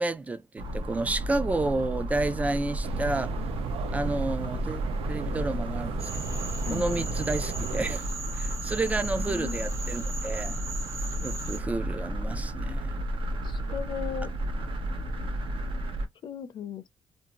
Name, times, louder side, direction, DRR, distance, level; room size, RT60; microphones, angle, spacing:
voice 1, 0.0-3.3 3.9-6.1 6.7-8.1 8.3-10.6 11.2-12.9, right 2 dB, 15° right, 0.3 m, -30 dB
sound 1, 0.6-16.1, equal, 60° right, 0.8 m, -32 dB
sound 2, 2.8-8.0, right 8 dB, 85° right, 0.4 m, -37 dB
Cricket / Frog, 6.0-11.6, right 3 dB, 30° right, 0.7 m, -39 dB
voice 2, 9.2-9.6 13.4-14.3 16.2-16.9, left 8 dB, 50° left, 0.5 m, -37 dB
2.6 x 2.4 x 2.8 m
cardioid pair, 150°, 10 cm